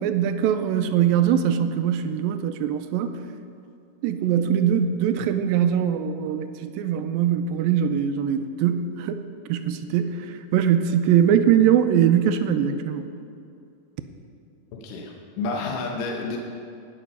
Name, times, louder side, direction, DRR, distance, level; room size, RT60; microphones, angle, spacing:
voice 1, 0.0-3.2 4.0-13.1, right 9 dB, 85° right, 9 dB, 2.3 m, -22 dB
voice 2, 14.7-16.4, left 3 dB, 70° left, 1 dB, 2.5 m, -30 dB
18.0 x 6.1 x 5.5 m, 2.5 s
omnidirectional pair, 4.2 m